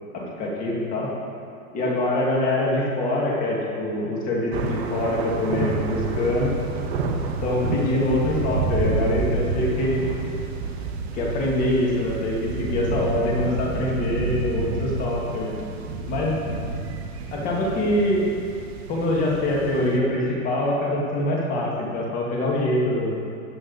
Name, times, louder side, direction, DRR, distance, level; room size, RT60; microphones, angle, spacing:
voice 1, 0.2-1.1 1.7-6.5 7.4-10.0 11.1-15.6 16.1-16.3 17.3-18.2 18.9-23.2, left 1 dB, 20° left, -3 dB, 1.9 m, -24 dB
sound 1, 4.5-20.0, right 4 dB, 45° right, 1.3 m, -29 dB
15.5 x 8.8 x 4.0 m, 2.5 s
hypercardioid pair, 165°, 42 cm